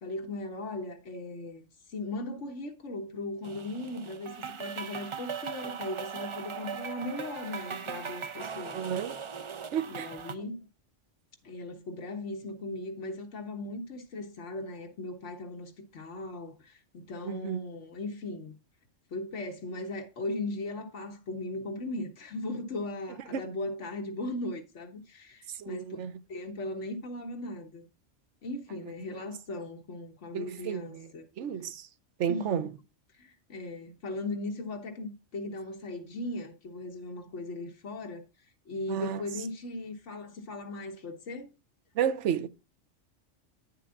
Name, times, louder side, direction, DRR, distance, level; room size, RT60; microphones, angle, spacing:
voice 1, 0.0-8.8 9.9-10.7 11.4-18.5 19.1-26.0 26.3-27.9 28.4-31.3 32.3-32.7 33.2-38.2 38.7-41.5, left 2 dB, 70° left, 1.6 m, -38 dB
sound 1, 3.4-10.3, right 6 dB, 50° right, 0.3 m, -39 dB
voice 2, 8.7-9.1 9.7-10.1 17.2-17.6 23.3-23.4 25.5-26.1 29.1-29.2 30.3-31.1 31.4-31.9 32.2-32.7 38.9-39.2 42.0-42.5, right 8 dB, 75° right, 1.0 m, -32 dB
9.5 x 7.5 x 2.4 m
omnidirectional pair, 1.3 m